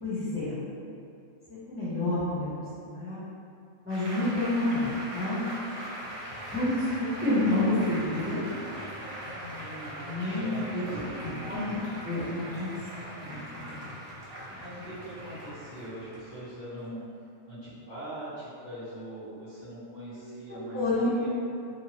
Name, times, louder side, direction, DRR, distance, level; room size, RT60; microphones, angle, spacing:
voice 1, 0.0-0.5 1.5-2.5 2.8-3.2 3.8-5.4 6.5-8.4 10.0-10.8 11.2-11.7 12.0-12.7 13.2-13.8 14.5-14.6 20.5-21.1, left 2 dB, 10° right, -15 dB, 0.8 m, -29 dB
Applause, 3.9-16.9, right 1 dB, 50° right, 0.9 m, -41 dB
voice 2, 9.2-11.6 14.6-17.0 17.4-21.4, right 1 dB, 45° left, -13 dB, 1.2 m, -42 dB
2.7 x 2.6 x 2.9 m, 2.5 s
omnidirectional pair, 1.5 m